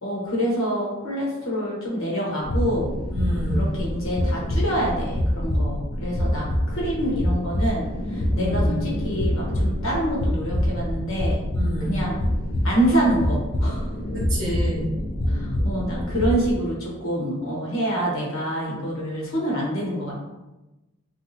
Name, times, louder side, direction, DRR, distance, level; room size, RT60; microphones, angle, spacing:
voice 1, 0.0-2.9 3.5-11.4 11.9-12.2 12.6-13.9 15.3-20.1, equal, 70° left, -3 dB, 1.0 m, -26 dB
sound 1, 2.4-16.6, left 1 dB, 40° left, 0.4 m, -25 dB
voice 2, 3.1-3.7 8.3-8.8 11.5-11.9 14.1-14.8, equal, 55° right, -5 dB, 1.0 m, -29 dB
2.9 x 2.7 x 2.7 m, 1.0 s
head